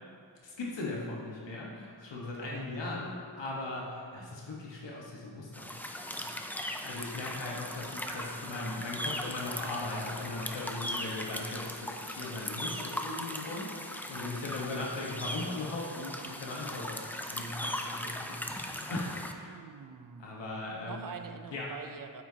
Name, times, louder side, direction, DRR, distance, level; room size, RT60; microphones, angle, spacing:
voice 1, 0.4-19.5 20.2-21.1 21.5-21.7, left 2 dB, 80° left, -4 dB, 1.4 m, -39 dB
voice 2, 2.4-2.7 8.7-9.0 19.4-20.5 20.8-22.2, right 6 dB, 50° right, 8 dB, 0.6 m, -45 dB
sound 1, 5.5-19.3, left 1 dB, 5° left, 0.5 m, -39 dB
sound 2, 7.8-11.8, equal, 60° left, 2.1 m, -54 dB
8.9 x 8.3 x 2.8 m, 2.1 s
wide cardioid pair, 105°, 43 cm